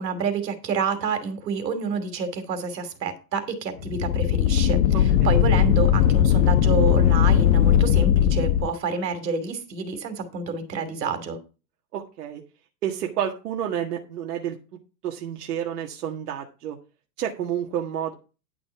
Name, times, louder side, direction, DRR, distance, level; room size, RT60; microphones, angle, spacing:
voice 1, 0.0-11.4, right 4 dB, 85° right, 9 dB, 2.9 m, -28 dB
sound 1, 3.8-8.7, left 10 dB, 55° left, 1.1 m, -19 dB
voice 2, 11.9-12.4 12.8-14.6 15.0-16.8 17.2-18.1, right 9 dB, 65° right, 1 dB, 1.8 m, -29 dB
11.0 x 6.1 x 4.7 m, 0.32 s
hypercardioid pair, 150°, 49 cm